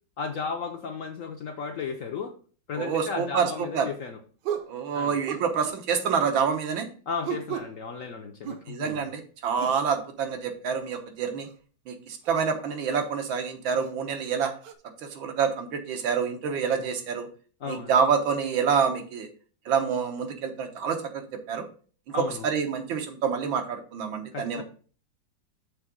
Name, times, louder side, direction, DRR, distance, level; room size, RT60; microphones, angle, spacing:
voice 1, 0.2-2.3 2.7-4.2 4.9-5.2 7.1-9.1 16.8-16.9 17.6-17.9 22.1-22.4 24.3-24.6, left 5 dB, 60° left, 5 dB, 0.9 m, -34 dB
voice 2, 2.8-3.9 4.7-6.9 8.7-11.5 11.9-14.5 15.0-17.3 17.7-19.3 19.7-21.6 22.1-24.6, right 6 dB, 85° right, 6 dB, 1.9 m, -27 dB
sound 1, 3.3-3.5 4.4-4.7 5.3-5.8 7.2-7.8 8.4-9.1 9.6-9.8 11.4-11.5 12.2-12.4 12.9-13.1 13.8-13.9 14.6-14.7, right 9 dB, 70° right, 1.3 m, -35 dB
6.5 x 3.6 x 6.0 m, 0.41 s
omnidirectional pair, 2.1 m